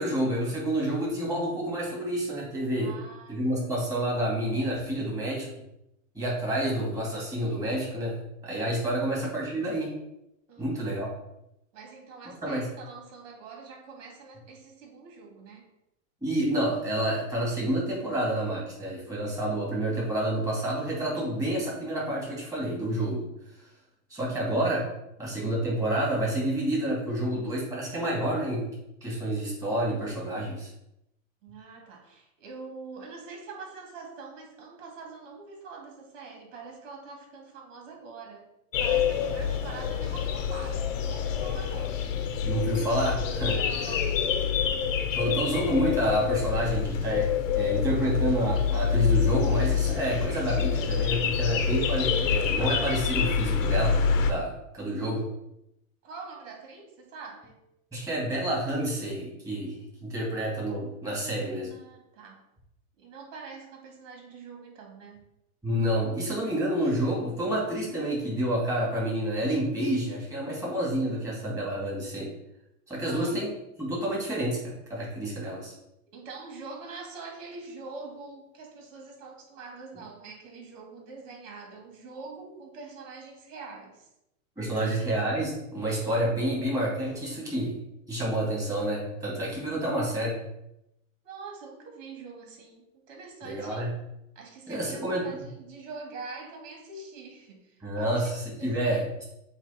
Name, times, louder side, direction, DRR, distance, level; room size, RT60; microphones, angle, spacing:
voice 1, 0.0-2.9 3.3-5.5 6.1-9.9 10.6-11.1 12.3-12.7 16.2-23.2 24.1-24.8 25.2-28.7 29.0-30.7 42.4-43.6 45.1-47.3 47.5-55.2 57.9-59.7 60.0-61.7 65.6-72.3 72.9-73.5 73.8-74.6 74.9-75.7 84.6-87.7 88.1-90.4 93.4-93.9 94.7-95.2 97.8-99.0, right 1 dB, 10° right, -5 dB, 2.7 m, -29 dB
voice 2, 2.8-3.8 8.9-9.0 10.5-11.0 11.7-15.7 24.2-24.4 31.4-38.5 38.8-42.2 43.5-44.2 56.0-57.6 61.7-62.4 63.0-65.2 73.0-73.4 76.1-84.1 84.7-85.0 91.2-93.9 94.3-98.3 98.6-99.0, right 4 dB, 70° right, 1 dB, 2.7 m, -44 dB
sound 1, 38.7-54.3, left 7 dB, 75° left, 1.1 m, -27 dB
8.1 x 3.3 x 4.5 m, 0.84 s
supercardioid pair, 145°, 39 cm